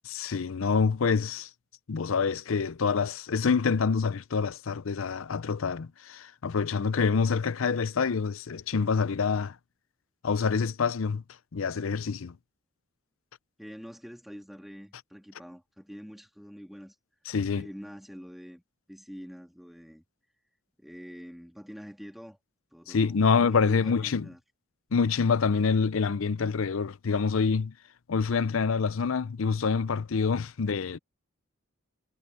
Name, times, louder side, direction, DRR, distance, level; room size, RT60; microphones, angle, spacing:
voice 1, 0.0-1.5 1.9-9.6 10.2-11.2 11.5-12.3 17.3-17.7 22.9-24.3 24.9-27.7 28.1-31.0, left 5 dB, 75° left, 0.6 m, -26 dB
voice 2, 13.6-16.9 17.4-18.6 18.9-20.0 20.8-22.4 22.7-24.4, equal, ahead, 3.1 m, -45 dB
head